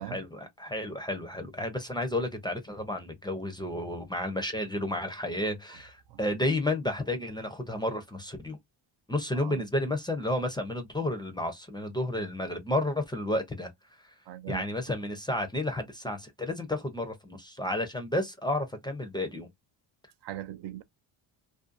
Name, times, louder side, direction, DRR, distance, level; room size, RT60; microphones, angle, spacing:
voice 1, 0.1-8.6 9.1-13.7 14.0-14.1 14.5-19.5, left 1 dB, 10° left, 0.5 m, -31 dB
voice 2, 9.3-9.7 14.3-14.6 20.2-20.8, right 13 dB, 60° right, 0.5 m, -40 dB
2.6 x 2.2 x 2.4 m
cardioid pair, 95°, 48 cm